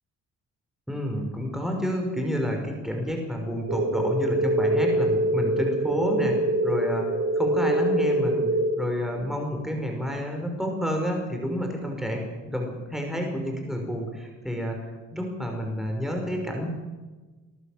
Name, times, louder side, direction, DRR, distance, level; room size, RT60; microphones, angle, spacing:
voice 1, 0.9-16.7, equal, ahead, 2 dB, 5.6 m, -29 dB
sound 1, 3.7-8.7, right 1 dB, 45° right, 3.5 m, -24 dB
26.5 x 14.5 x 7.6 m, 1.3 s
cardioid pair, 90°, 30 cm